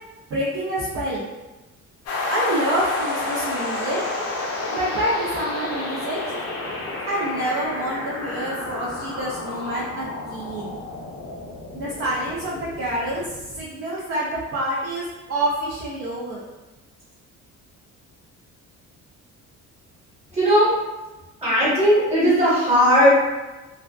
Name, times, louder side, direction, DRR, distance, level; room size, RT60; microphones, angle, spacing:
voice 1, 0.3-1.3 2.3-4.0 4.7-6.2 7.1-10.8 11.7-13.2 13.6-16.4, right 1 dB, 50° right, -6 dB, 0.5 m, -27 dB
sound 1, 2.1-13.7, left 2 dB, 50° left, 0.5 m, -30 dB
voice 2, 20.3-20.7 21.4-23.1, equal, 20° right, -9 dB, 1.1 m, -17 dB
2.4 x 2.2 x 2.3 m, 1.1 s
cardioid pair, 150°, 30 cm